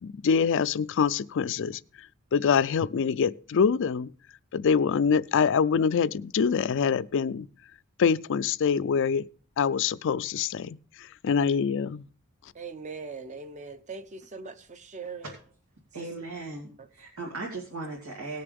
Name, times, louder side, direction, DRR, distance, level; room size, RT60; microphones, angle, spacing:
voice 1, 0.0-1.8 2.3-4.1 4.5-7.5 8.0-9.2 9.6-10.8 11.2-12.1, left 6 dB, 60° left, 0.4 m, -25 dB
voice 2, 12.5-15.2, right 4 dB, 35° right, 0.8 m, -40 dB
voice 3, 15.9-18.4, right 3 dB, 85° right, 2.6 m, -37 dB
18.5 x 6.8 x 3.5 m
head